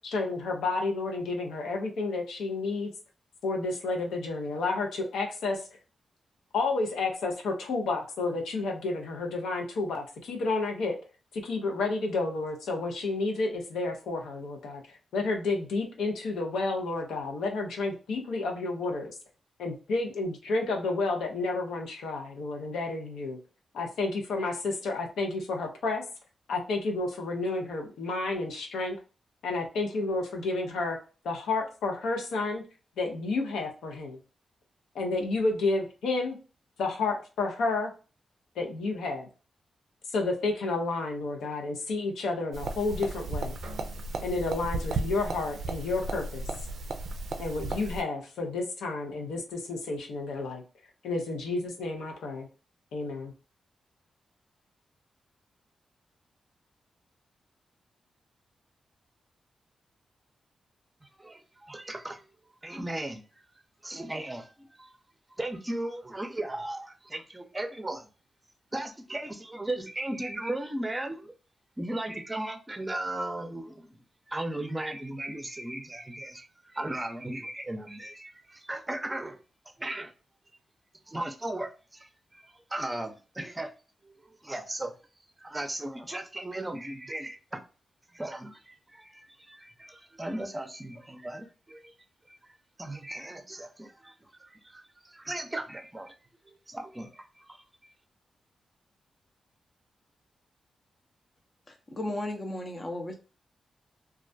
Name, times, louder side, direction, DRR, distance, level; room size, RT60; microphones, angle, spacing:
voice 1, 0.0-2.9 3.4-5.6 6.5-11.0 11.3-19.1 19.6-23.4 23.7-26.0 26.5-29.0 29.4-31.0 31.2-32.6 33.0-34.2 34.9-36.4 36.8-37.9 38.6-39.3 40.1-43.6 44.2-46.5 47.4-50.6 51.0-52.5 52.9-53.3, left 3 dB, 85° left, 0.6 m, -31 dB
sound 1, 42.5-48.0, right 3 dB, 75° right, 0.3 m, -35 dB
voice 2, 61.2-62.2 62.6-63.2 63.8-64.9 65.4-68.1 68.7-71.3 71.8-74.0 74.3-79.4 79.8-80.1 81.1-83.7 84.0-84.9 85.4-87.6 88.1-91.9 92.3-96.1 96.5-97.7, right 1 dB, 20° right, 0.6 m, -37 dB
voice 3, 101.7-103.2, left 1 dB, 40° left, 0.6 m, -35 dB
2.3 x 2.1 x 2.5 m
supercardioid pair, 45°, 0 cm